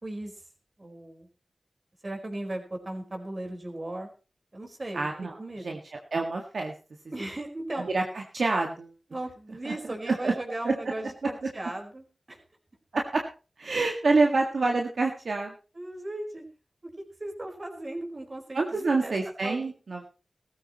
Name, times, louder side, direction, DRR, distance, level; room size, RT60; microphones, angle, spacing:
voice 1, 0.0-0.3 0.8-1.3 2.0-4.1 4.5-5.1 5.4-5.8 7.1-7.9 9.1-12.4 13.7-13.8 15.7-16.4 16.8-16.9 17.2-19.1 19.4-19.7, right 1 dB, 45° right, 3 dB, 4.5 m, -37 dB
voice 2, 4.9-5.4 5.6-5.8 6.1-6.7 7.7-8.9 9.7-9.8 10.1-10.3 10.6-10.7 12.9-13.2 13.6-15.5 18.5-20.1, right 3 dB, 75° right, 1 dB, 1.8 m, -27 dB
17.5 x 14.0 x 3.0 m, 0.33 s
cardioid pair, 45°, 0 cm